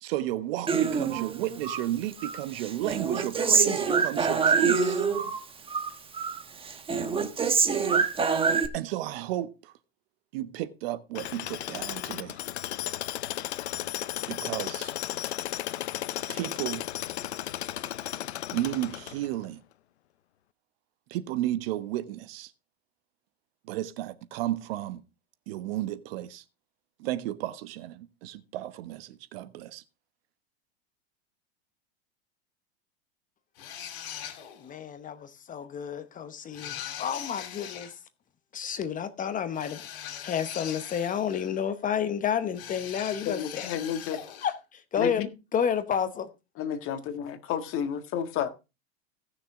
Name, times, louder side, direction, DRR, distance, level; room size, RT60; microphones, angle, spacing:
voice 1, 0.0-5.0 8.7-9.7 10.3-12.4 14.3-14.9 16.3-16.8 18.5-19.6 21.1-22.5 23.7-25.0 25.5-26.4 27.0-29.8, right 14 dB, 65° right, 1.1 m, -33 dB
Human voice, 0.7-1.8 2.2-5.4 5.7-6.4 6.7-8.7, right 5 dB, 15° right, 1.2 m, -25 dB
Tools, 11.1-19.4, left 13 dB, 85° left, 0.7 m, -34 dB
sound 1, 33.6-34.7 36.5-37.9 39.5-41.6 42.5-44.6, left 10 dB, 65° left, 2.9 m, -41 dB
voice 2, 34.6-38.0 38.5-43.7 44.4-45.2 45.5-46.3, left 8 dB, 25° left, 0.9 m, -30 dB
voice 3, 43.3-44.2 45.0-45.3 46.6-48.5, left 8 dB, 40° left, 1.7 m, -31 dB
17.5 x 6.6 x 3.7 m
hypercardioid pair, 115°, 32 cm